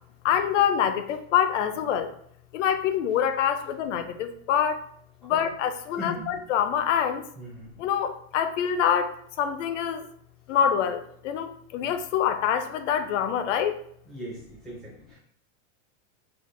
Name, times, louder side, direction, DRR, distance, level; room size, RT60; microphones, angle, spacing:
voice 1, 0.2-2.1 2.5-4.8 5.2-7.2 7.8-10.1 10.5-13.8, left 8 dB, 70° left, 8 dB, 0.5 m, -25 dB
voice 2, 5.9-6.3 7.4-7.7 11.8-11.9 14.0-15.2, equal, ahead, -8 dB, 0.4 m, -39 dB
4.0 x 2.1 x 3.1 m, 0.64 s
supercardioid pair, 170°, 39 cm